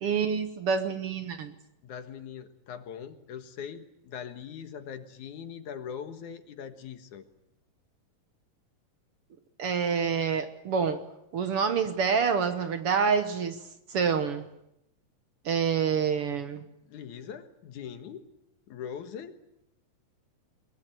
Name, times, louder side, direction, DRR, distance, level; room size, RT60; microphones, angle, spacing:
voice 1, 0.0-1.5 9.6-11.0 11.3-13.6 13.9-14.5 15.4-16.6, right 6 dB, 60° right, 9 dB, 1.6 m, -27 dB
voice 2, 1.8-7.3 16.9-18.3 18.7-19.4, left 7 dB, 65° left, 9 dB, 2.7 m, -41 dB
22.0 x 22.0 x 9.1 m, 0.82 s
omnidirectional pair, 3.9 m